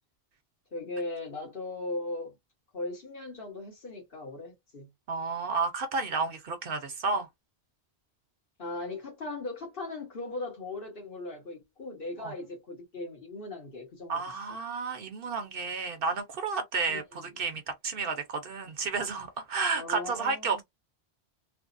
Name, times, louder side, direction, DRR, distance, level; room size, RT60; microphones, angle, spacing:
voice 1, 0.7-2.4 2.7-4.9 8.6-14.2 16.9-17.6 19.7-20.6, left 2 dB, 55° left, 1.5 m, -38 dB
voice 2, 5.1-7.3 12.2-12.3 14.1-20.6, right 4 dB, 60° right, 0.8 m, -31 dB
3.3 x 2.0 x 2.4 m
omnidirectional pair, 1.1 m